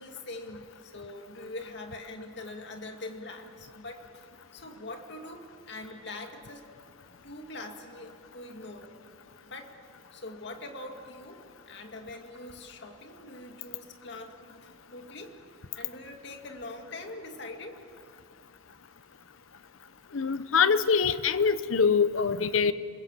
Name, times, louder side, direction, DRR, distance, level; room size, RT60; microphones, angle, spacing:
voice 1, 0.0-4.3 4.5-6.6 7.2-8.9 9.4-9.8 10.1-15.4 15.7-17.8, left 2 dB, 60° left, 4 dB, 2.2 m, -43 dB
voice 2, 20.1-22.7, left 6 dB, 90° left, 14 dB, 0.8 m, -24 dB
27.0 x 21.5 x 7.5 m, 2.5 s
head